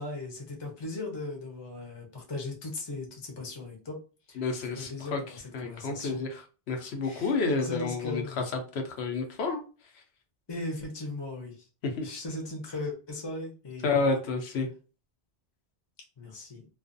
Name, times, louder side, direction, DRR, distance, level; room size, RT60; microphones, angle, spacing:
voice 1, 0.0-4.0 4.3-4.4 4.7-6.2 7.0-8.5 10.5-11.7 12.0-14.2 16.2-16.6, left 2 dB, 30° left, 1 dB, 0.7 m, -38 dB
voice 2, 4.4-5.2 5.5-8.2 8.5-9.6 11.8-12.1 13.8-14.7, left 4 dB, 75° left, 4 dB, 0.9 m, -30 dB
2.4 x 2.3 x 2.5 m, 0.34 s
omnidirectional pair, 1.1 m